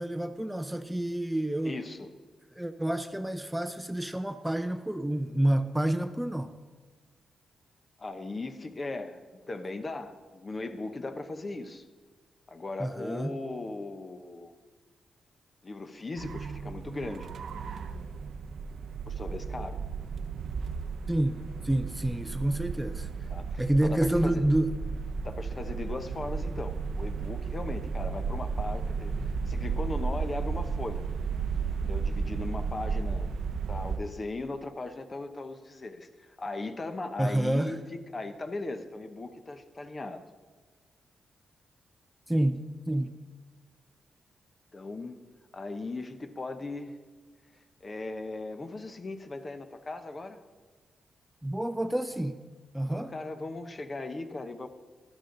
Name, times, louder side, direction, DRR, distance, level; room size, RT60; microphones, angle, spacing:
voice 1, 0.0-1.8 2.5-6.6 12.8-13.4 21.1-23.1 23.6-24.8 37.2-37.8 42.3-43.2 51.4-52.4 52.7-53.1, right 1 dB, 5° right, 9 dB, 0.6 m, -29 dB
voice 2, 1.6-2.1 8.0-9.2 9.5-11.9 12.5-14.5 15.6-17.3 19.1-19.8 23.3-24.4 25.2-31.0 31.8-33.3 33.7-40.2 44.7-45.2 45.5-47.0 47.8-50.4 52.9-54.7, left 2 dB, 35° left, 8 dB, 1.0 m, -38 dB
sound 1, 16.2-34.0, right 5 dB, 70° right, 0.6 m, -34 dB
12.0 x 11.5 x 3.9 m, 1.4 s
cardioid pair, 70°, 0 cm